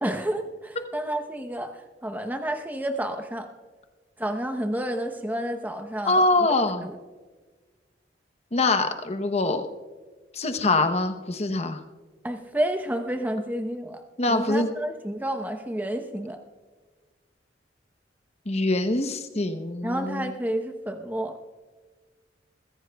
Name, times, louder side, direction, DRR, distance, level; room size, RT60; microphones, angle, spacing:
voice 1, 0.0-3.5 4.2-6.2 6.8-7.0 12.2-16.4 19.8-21.4, right 1 dB, 10° right, 6 dB, 0.9 m, -30 dB
voice 2, 6.1-6.9 8.5-9.6 10.3-11.8 14.2-14.7 18.5-20.3, left 2 dB, 35° left, 8 dB, 0.9 m, -24 dB
22.5 x 15.0 x 2.3 m, 1.4 s
head